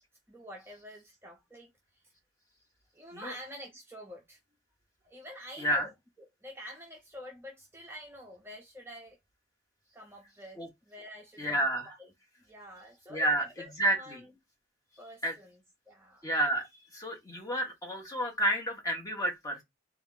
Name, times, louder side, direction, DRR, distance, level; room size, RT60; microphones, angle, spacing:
voice 1, 0.3-2.1 2.9-4.4 5.0-5.9 6.2-9.2 9.9-12.1 12.4-14.3 15.0-16.2, equal, 10° right, 0.6 m, -48 dB
voice 2, 11.4-11.9 13.1-13.5 13.8-14.2 15.2-15.3 16.2-16.7 16.9-19.6, right 1 dB, 15° left, 1.0 m, -30 dB
3.8 x 2.4 x 3.7 m
head